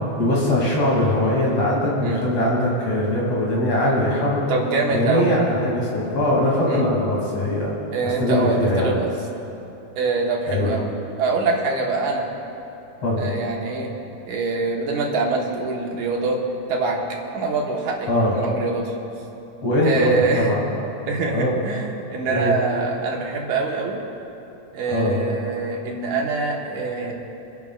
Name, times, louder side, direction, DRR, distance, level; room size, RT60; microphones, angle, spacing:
voice 1, 0.2-4.4 4.9-7.7 8.2-9.0 10.5-10.8 13.0-13.3 18.1-18.3 19.6-20.6 21.3-21.6 22.3-22.6 24.9-25.2, left 1 dB, 55° left, -5 dB, 3.8 m, -21 dB
voice 2, 4.5-5.3 6.7-6.9 7.9-9.1 10.0-10.9 11.2-12.3 13.1-13.9 14.3-16.4 16.7-17.0 17.3-18.9 19.8-20.5 21.1-24.0 24.7-27.1, right 3 dB, 85° right, -1 dB, 2.9 m, -24 dB
29.5 x 11.0 x 2.5 m, 2.9 s
omnidirectional pair, 3.4 m